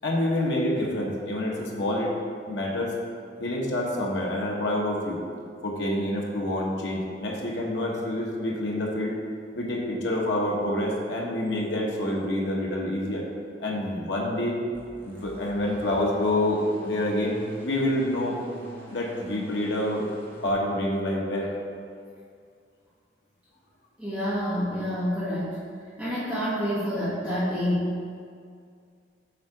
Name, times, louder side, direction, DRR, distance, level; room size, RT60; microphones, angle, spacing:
voice 1, 0.0-2.1 2.5-2.9 3.4-5.2 5.6-9.2 9.5-13.2 13.6-14.6 15.0-18.4 18.9-20.0 20.4-21.6, left 1 dB, 80° left, -2 dB, 1.1 m, -27 dB
sound 1, 14.7-20.5, left 1 dB, 10° left, 1.0 m, -46 dB
voice 2, 24.0-25.6 26.0-27.9, equal, 5° right, -12 dB, 1.4 m, -28 dB
7.3 x 3.6 x 4.8 m, 2.2 s
head